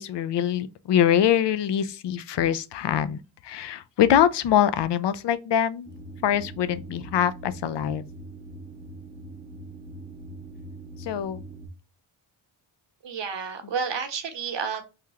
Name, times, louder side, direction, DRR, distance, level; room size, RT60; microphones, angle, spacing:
voice 1, 0.0-5.9 6.2-8.1 11.0-11.4, left 10 dB, 60° left, 0.5 m, -24 dB
sound 1, 5.9-11.7, right 2 dB, 10° right, 0.7 m, -42 dB
voice 2, 13.0-14.8, right 6 dB, 60° right, 1.0 m, -30 dB
3.4 x 2.3 x 2.8 m
cardioid pair, 50°, 50 cm